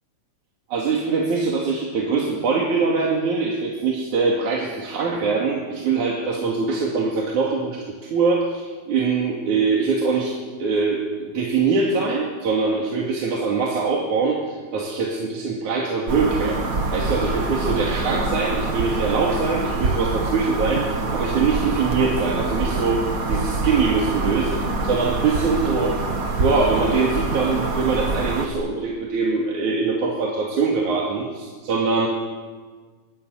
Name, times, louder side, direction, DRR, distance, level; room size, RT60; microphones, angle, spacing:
voice 1, 0.7-16.6 16.9-24.6 24.8-26.1 26.4-32.1, right 4 dB, 80° right, -1 dB, 3.9 m, -23 dB
sound 1, 16.1-28.5, right 3 dB, 35° right, 2.0 m, -25 dB
23.5 x 21.0 x 8.2 m, 1.5 s
omnidirectional pair, 3.4 m